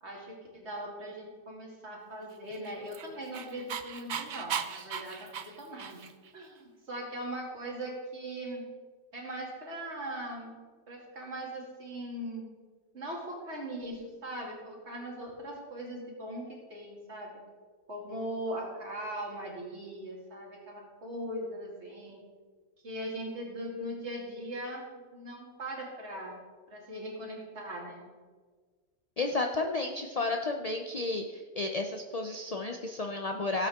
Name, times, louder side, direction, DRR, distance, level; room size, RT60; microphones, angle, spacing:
voice 1, 0.0-6.0 6.3-8.7 9.1-10.6 10.9-12.5 12.9-17.3 17.9-22.2 22.8-26.4 26.7-28.1, right 1 dB, 45° right, -2 dB, 2.8 m, -40 dB
Dog, 2.5-6.3, right 7 dB, 65° right, 0.4 m, -37 dB
voice 2, 29.2-33.7, left 2 dB, 55° left, 3 dB, 0.4 m, -32 dB
16.5 x 8.3 x 3.6 m, 1.5 s
omnidirectional pair, 1.6 m